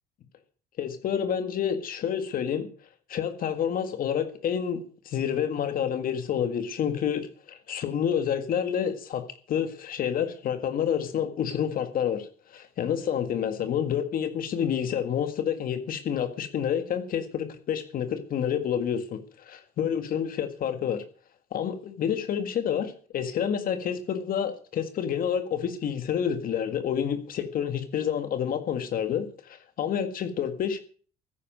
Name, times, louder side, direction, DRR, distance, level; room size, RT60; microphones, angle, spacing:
voice 1, 0.8-2.7 3.1-4.8 5.1-21.0 21.5-30.8, left 8 dB, 60° left, 9 dB, 1.8 m, -29 dB
15.0 x 9.9 x 6.5 m, 0.43 s
cardioid pair, 110°, 17 cm